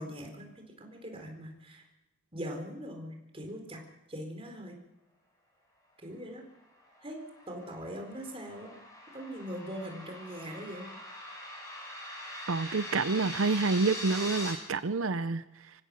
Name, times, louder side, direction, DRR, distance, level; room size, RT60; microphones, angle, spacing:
voice 1, 0.0-1.8 2.3-3.8 4.1-4.8 6.0-6.4 7.0-7.2 7.5-8.8 9.1-10.9, equal, 30° right, 3 dB, 4.1 m, -41 dB
sound 1, 6.8-14.5, equal, 15° left, 5.7 m, -42 dB
voice 2, 12.5-15.4, right 3 dB, 85° right, 13 dB, 0.7 m, -28 dB
25.5 x 16.0 x 6.4 m, 0.97 s
head